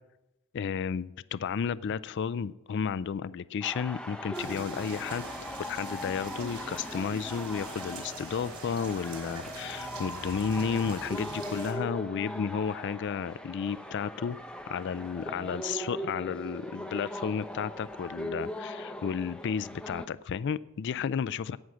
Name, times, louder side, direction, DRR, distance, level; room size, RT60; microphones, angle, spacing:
voice 1, 0.5-5.3 5.6-14.4 14.7-21.6, left 6 dB, 55° left, 18 dB, 0.3 m, -32 dB
sound 1, 3.6-20.1, equal, 5° left, 0.7 m, -40 dB
sound 2, 4.3-11.7, right 3 dB, 70° right, 3.5 m, -44 dB
17.5 x 6.4 x 7.4 m, 0.97 s
head